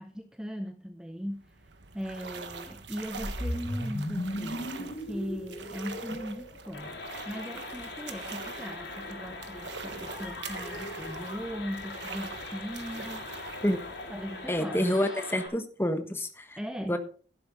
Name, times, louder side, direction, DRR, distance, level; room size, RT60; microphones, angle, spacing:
voice 1, 0.0-1.6 1.9-7.0 7.3-13.3 14.1-15.2 16.6-17.0, equal, 5° right, 7 dB, 0.6 m, -39 dB
sound 1, 1.3-15.1, right 4 dB, 85° right, 1.4 m, -44 dB
sound 2, 3.1-7.4, left 1 dB, 50° left, 1.7 m, -36 dB
sound 3, 6.7-15.5, left 3 dB, 80° left, 4.5 m, -41 dB
voice 2, 14.5-16.6 16.9-17.0, equal, 15° left, 7 dB, 1.2 m, -28 dB
12.5 x 11.0 x 3.8 m, 0.40 s
head